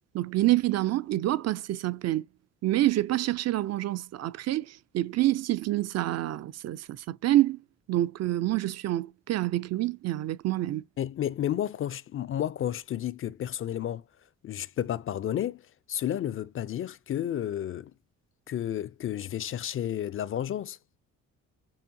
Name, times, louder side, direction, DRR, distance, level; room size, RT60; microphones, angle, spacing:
voice 1, 0.1-2.3 2.6-7.6 7.9-10.8, right 15 dB, 60° right, 0.4 m, -27 dB
voice 2, 11.0-14.0 14.4-15.6 15.9-17.9 18.5-20.8, left 11 dB, 45° left, 0.4 m, -31 dB
7.0 x 2.8 x 2.7 m
cardioid pair, 90°, 30 cm